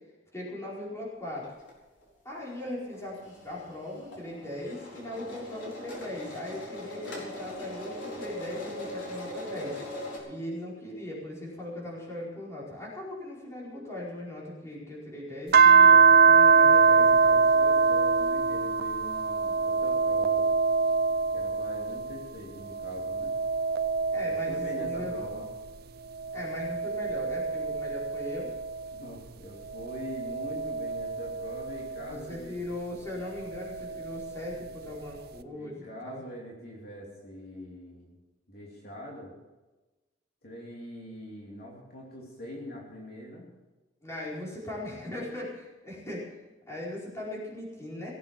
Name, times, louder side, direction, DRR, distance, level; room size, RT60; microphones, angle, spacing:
voice 1, 0.3-1.5 2.2-9.8 10.3-17.5 24.1-25.1 26.3-28.5 31.9-36.2 44.0-46.3 46.7-48.1, left 1 dB, 15° left, -5 dB, 4.7 m, -39 dB
sound 1, 1.4-1.7 2.0-2.1 2.3-10.2, left 1 dB, 75° left, 4.6 m, -41 dB
sound 2, 15.5-22.2 22.7-25.6 26.2-29.0 29.7-32.2 33.5-34.6, right 5 dB, 55° right, 0.6 m, -24 dB
voice 2, 17.5-20.5 21.3-23.3 24.2-25.5 28.9-32.6 35.5-38.2 38.5-39.3 40.4-43.4, equal, 55° left, -3 dB, 2.9 m, -43 dB
18.0 x 8.4 x 7.3 m, 1.1 s
head